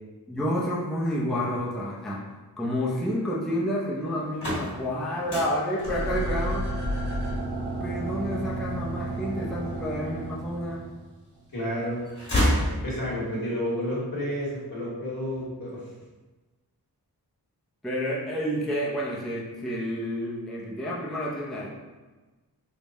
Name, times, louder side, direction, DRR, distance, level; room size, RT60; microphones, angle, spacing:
voice 1, 0.3-2.2 2.6-6.7 7.8-10.8 17.8-21.7, equal, ahead, -6 dB, 0.6 m, -29 dB
sound 1, 4.1-10.1 10.6-11.4 11.7-13.3, equal, 75° left, 1.5 m, -30 dB
sound 2, 5.8-11.0 11.4-11.5, right 1 dB, 80° right, 1.1 m, -31 dB
voice 2, 11.5-12.1 12.6-15.8, equal, 60° left, -6 dB, 1.4 m, -30 dB
3.5 x 2.2 x 4.0 m, 1.3 s
wide cardioid pair, 55°, 40 cm